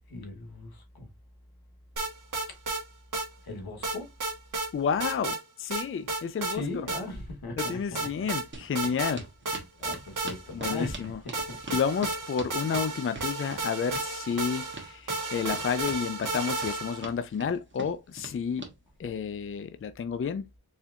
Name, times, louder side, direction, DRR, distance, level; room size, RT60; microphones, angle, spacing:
voice 1, 0.1-1.1 3.4-4.1 6.5-8.1 9.8-11.6, left 2 dB, 80° left, 1.3 m, -38 dB
sound 1, 2.0-2.8 3.1-3.3 3.8-4.7 5.0-5.4 5.7-6.6 6.9-7.0 7.6-8.4 8.7-9.2 9.5-11.0 11.3-17.1, right 3 dB, 55° right, 1.4 m, -33 dB
voice 2, 4.7-6.9 7.6-9.2 10.5-11.2 11.7-18.6 19.0-20.5, left 6 dB, 35° left, 0.4 m, -31 dB
sound 2, 8.5-18.8, right 3 dB, 30° right, 1.4 m, -43 dB
4.3 x 3.4 x 2.5 m
cardioid pair, 60°, 37 cm